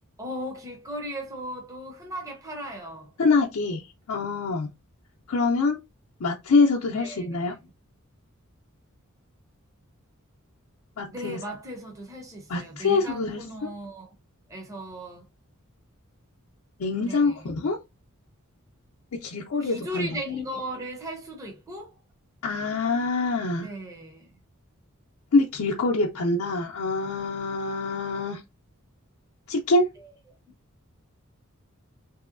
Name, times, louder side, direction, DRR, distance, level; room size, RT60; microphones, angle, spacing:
voice 1, 0.2-3.1 6.9-7.7 11.1-14.1 14.5-15.2 17.0-17.5 19.6-21.9 23.6-24.3 30.0-30.1, equal, 15° right, 0.6 m, -37 dB
voice 2, 3.2-3.8 4.1-4.7 5.3-5.8 6.2-7.6 11.0-11.4 12.5-13.7 16.8-17.8 19.2-20.2 22.4-23.7 25.3-28.4 29.5-29.9, left 3 dB, 75° left, 0.5 m, -25 dB
3.0 x 2.7 x 2.5 m
head